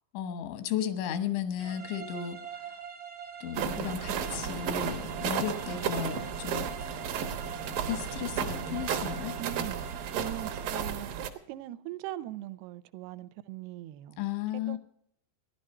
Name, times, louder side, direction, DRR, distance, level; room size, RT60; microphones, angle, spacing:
voice 1, 0.1-2.4 3.4-6.7 7.9-9.4 14.2-14.8, left 9 dB, 85° left, 10 dB, 3.5 m, -34 dB
sound 1, 1.6-11.0, right 7 dB, 50° right, 1.4 m, -44 dB
sound 2, 3.5-11.3, right 7 dB, 65° right, 2.5 m, -33 dB
voice 2, 9.4-14.2 14.5-14.8, right 15 dB, 80° right, 14 dB, 2.4 m, -41 dB
15.0 x 11.5 x 5.4 m, 0.72 s
omnidirectional pair, 5.2 m